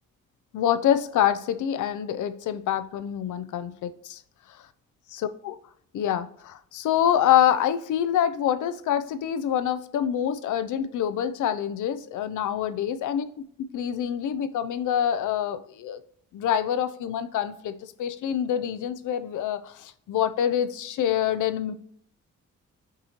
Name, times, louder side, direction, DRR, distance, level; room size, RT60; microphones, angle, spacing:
voice 1, 0.5-4.2 5.1-5.6 5.9-13.3 13.7-16.0 16.3-17.7 18.0-21.7, left 10 dB, 80° left, 0.5 m, -26 dB
6.0 x 2.7 x 2.9 m
cardioid pair, 70°, 30 cm